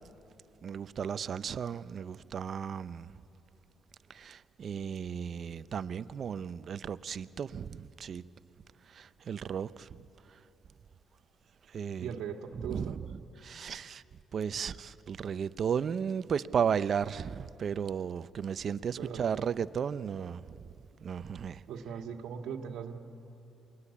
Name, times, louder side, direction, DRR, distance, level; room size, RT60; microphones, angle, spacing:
voice 1, 0.6-3.1 4.1-8.3 8.9-10.0 10.3-10.4 11.7-12.1 12.5-13.0 13.4-14.0 14.3-20.7 21.0-21.6, right 7 dB, 55° right, 0.6 m, -34 dB
voice 2, 12.0-13.0 19.0-19.4 21.7-23.0, right 7 dB, 80° right, 1.7 m, -39 dB
28.0 x 22.0 x 8.5 m
cardioid pair, 90°, 0 cm